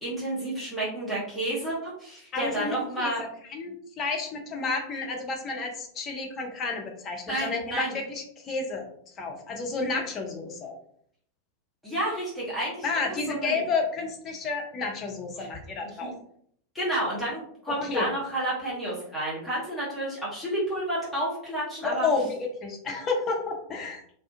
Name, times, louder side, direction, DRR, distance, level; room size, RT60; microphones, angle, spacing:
voice 1, 0.0-3.2 7.3-7.9 11.8-13.6 15.4-15.5 16.0-16.1 16.7-22.1, right 1 dB, ahead, -9 dB, 1.1 m, -30 dB
voice 2, 2.3-3.1 3.5-10.7 12.8-16.1 17.8-18.1 22.0-24.0, left 4 dB, 30° left, 2 dB, 0.6 m, -31 dB
2.5 x 2.3 x 2.6 m, 0.65 s
figure-of-eight pair, 90°, 0 cm